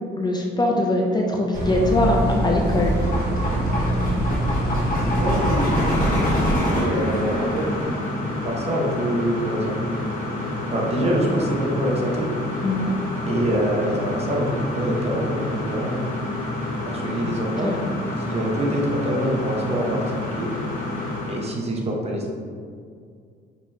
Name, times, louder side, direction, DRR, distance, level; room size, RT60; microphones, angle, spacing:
voice 1, 0.1-3.0 12.6-13.0 17.2-17.3 17.6-17.8, left 1 dB, 20° left, -1 dB, 0.5 m, -22 dB
sound 1, 1.5-6.6, right 1 dB, 55° right, 1.1 m, -24 dB
sound 2, 2.1-21.5, left 1 dB, 45° left, 1.5 m, -28 dB
voice 2, 4.9-5.7 6.6-7.9 8.4-9.8 10.7-12.3 13.3-16.0 16.8-17.7 18.3-20.5 21.3-22.3, right 1 dB, 30° right, -1 dB, 0.8 m, -25 dB
5.3 x 2.8 x 3.4 m, 2.2 s
cardioid pair, 120°, 20 cm